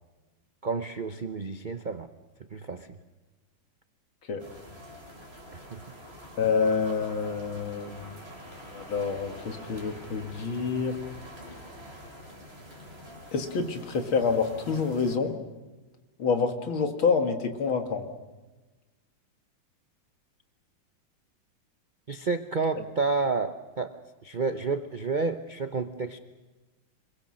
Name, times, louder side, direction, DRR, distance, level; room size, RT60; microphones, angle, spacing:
voice 1, 0.6-2.1 2.5-2.9 5.5-5.8 22.1-24.0 24.2-26.2, right 4 dB, 70° right, 8 dB, 0.4 m, -30 dB
sound 1, 4.4-15.2, equal, 30° right, 3.6 m, -46 dB
voice 2, 6.4-8.2 8.7-11.0 13.3-15.4 16.2-18.1, left 5 dB, 80° left, 5 dB, 2.7 m, -27 dB
25.5 x 22.5 x 6.4 m, 1.2 s
omnidirectional pair, 2.2 m